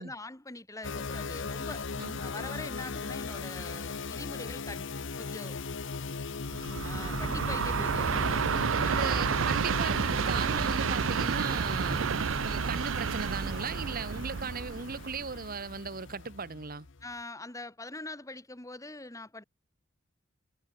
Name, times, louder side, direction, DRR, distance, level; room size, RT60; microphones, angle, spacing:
voice 1, 0.0-1.9 2.2-4.9 5.2-5.6 6.8-8.3 8.8-9.3 17.0-19.4, left 2 dB, 15° left, 2.0 m, -43 dB
sound 1, 0.8-17.1, left 4 dB, 65° left, 0.9 m, -39 dB
Train, 6.5-15.7, right 6 dB, 70° right, 0.6 m, -30 dB
voice 2, 8.8-12.0 12.4-16.9, right 5 dB, 50° right, 1.5 m, -37 dB
head